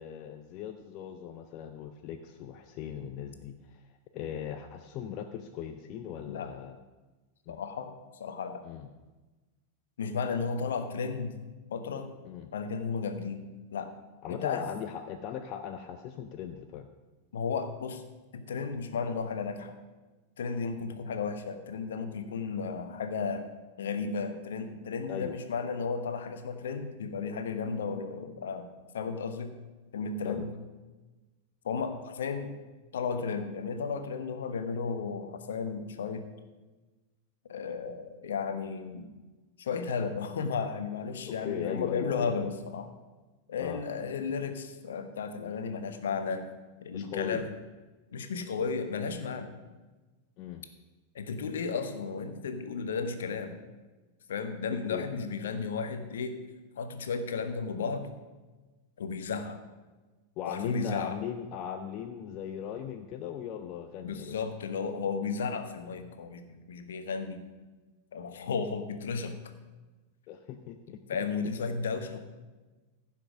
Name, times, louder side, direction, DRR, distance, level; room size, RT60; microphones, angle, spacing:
voice 1, 0.0-6.8 7.5-7.6 8.6-8.9 12.2-12.5 14.2-16.9 25.1-25.4 30.2-30.5 41.3-42.5 43.6-43.8 46.9-47.4 50.4-50.7 54.7-55.0 60.4-64.4 70.3-71.3, left 9 dB, 40° left, 7 dB, 0.6 m, -39 dB
voice 2, 7.5-7.9 8.2-8.6 10.0-11.4 11.7-12.1 12.5-13.4 13.7-13.9 14.3-14.6 17.3-18.0 18.3-19.7 20.4-23.5 23.8-28.7 28.9-29.6 29.9-30.5 31.6-32.5 32.9-36.3 37.5-39.1 39.6-42.9 43.5-46.5 46.8-47.4 48.1-49.5 51.1-53.6 54.3-56.4 56.8-58.1 59.0-59.6 60.4-61.2 64.0-67.5 68.1-69.4 71.1-72.2, left 5 dB, 65° left, 8 dB, 1.1 m, -34 dB
15.0 x 5.7 x 6.2 m, 1.2 s
figure-of-eight pair, 90°, 0 cm